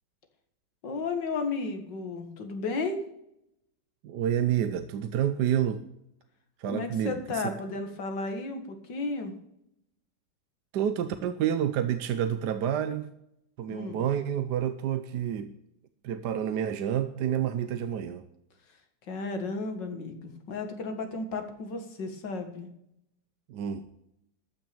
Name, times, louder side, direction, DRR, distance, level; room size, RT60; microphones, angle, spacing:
voice 1, 0.8-3.1 6.7-9.3 13.7-14.0 19.1-22.7, left 3 dB, 80° left, 6 dB, 2.5 m, -33 dB
voice 2, 4.0-5.8 6.6-7.5 10.7-13.1 13.6-15.5 16.0-18.2 23.5-23.8, right 9 dB, 70° right, 10 dB, 1.3 m, -29 dB
13.5 x 6.2 x 8.5 m, 0.78 s
omnidirectional pair, 1.9 m